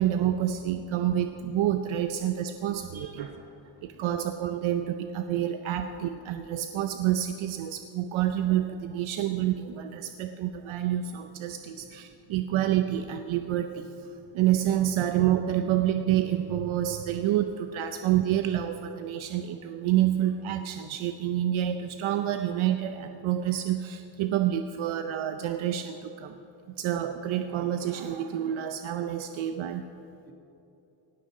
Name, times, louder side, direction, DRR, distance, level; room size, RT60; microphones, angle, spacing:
voice 1, 0.0-3.3 3.8-26.4 26.8-29.8, right 11 dB, 80° right, 8 dB, 0.7 m, -28 dB
voice 2, 2.9-4.1 4.6-4.7 5.8-5.9 10.3-10.5 11.7-12.2 30.2-30.3, right 3 dB, 50° right, 1 dB, 2.1 m, -51 dB
18.5 x 13.5 x 3.8 m, 2.8 s
wide cardioid pair, 175°, 47 cm